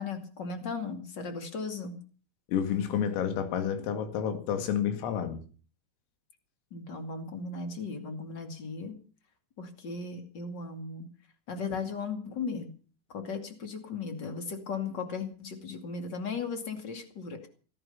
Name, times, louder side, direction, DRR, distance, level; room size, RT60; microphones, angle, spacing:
voice 1, 0.0-2.0 6.7-9.0 9.6-11.1 11.5-12.7 13.1-17.5, left 4 dB, 40° left, 6 dB, 1.6 m, -36 dB
voice 2, 2.5-5.4, left 8 dB, 90° left, 7 dB, 4.8 m, -30 dB
16.5 x 14.0 x 5.6 m, 0.40 s
omnidirectional pair, 5.8 m